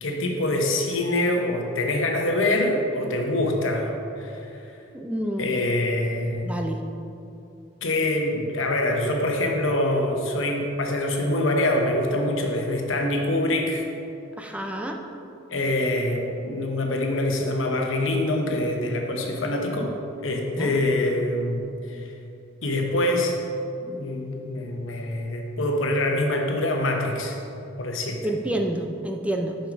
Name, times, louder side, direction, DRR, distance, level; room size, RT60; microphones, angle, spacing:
voice 1, 0.0-3.9 4.2-4.5 5.4-6.5 7.8-13.8 15.5-20.0 20.2-22.1 22.6-23.3 23.8-27.4 27.8-28.3, left 1 dB, 90° left, 2 dB, 1.0 m, -25 dB
voice 2, 4.9-5.5 6.4-6.8 14.4-15.0 20.6-20.8 28.2-29.6, right 1 dB, 5° right, 3 dB, 0.4 m, -28 dB
5.9 x 5.6 x 5.2 m, 2.7 s
head